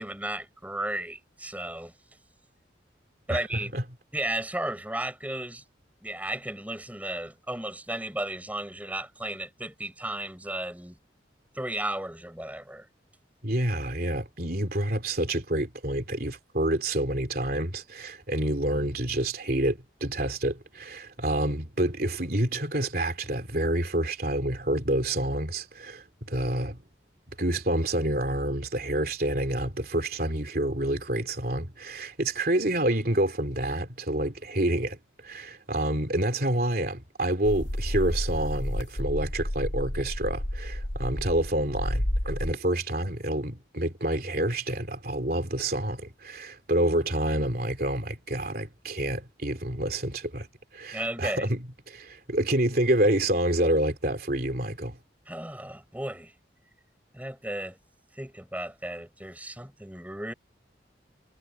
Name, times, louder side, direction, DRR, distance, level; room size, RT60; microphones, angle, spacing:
voice 1, 0.0-1.9 3.3-3.7 4.1-5.6 6.0-11.0 11.5-12.9 50.9-51.5 55.3-56.3 57.1-57.8 58.2-60.3, right 1 dB, 10° right, 7.5 m, -34 dB
voice 2, 3.3-3.8 13.4-26.8 27.3-50.5 50.7-55.0, right 1 dB, 50° right, 3.3 m, -28 dB
sound 1, 37.4-42.5, equal, 85° left, 2.7 m, -31 dB
head